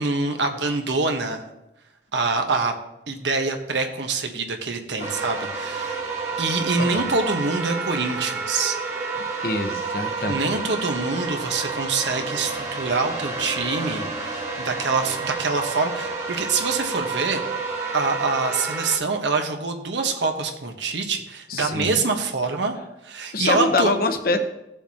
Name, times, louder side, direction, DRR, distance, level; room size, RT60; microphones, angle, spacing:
voice 1, 0.0-1.4 2.1-2.7 3.1-6.0 6.4-8.8 10.2-17.4 17.9-22.7 23.0-23.9, right 3 dB, 85° right, 4 dB, 1.2 m, -25 dB
sound 1, 5.0-19.0, right 4 dB, 40° right, 1.6 m, -30 dB
voice 2, 9.4-10.6 21.5-22.0 23.3-24.4, left 2 dB, 55° left, 7 dB, 0.9 m, -24 dB
16.5 x 7.0 x 2.9 m, 0.92 s
head